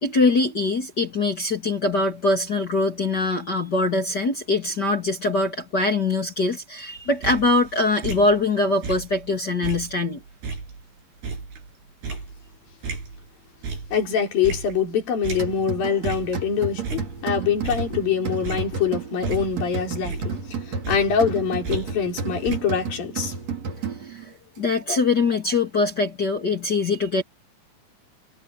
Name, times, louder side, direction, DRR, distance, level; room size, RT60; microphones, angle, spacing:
voice 1, 0.0-10.2 24.1-27.2, left 3 dB, 30° left, 2.2 m, -23 dB
sound 1, 7.0-9.3 9.6-13.3 13.6-14.1 14.4-15.8 16.0-16.4 16.7-18.1 18.4-19.8 20.0-22.2 22.4-22.6, right 4 dB, 65° right, 8.7 m, -34 dB
voice 2, 13.9-23.3 24.9-25.0, left 7 dB, 55° left, 6.4 m, -24 dB
sound 2, 15.4-24.3, right 4 dB, 40° right, 4.2 m, -32 dB
omnidirectional pair, 5.1 m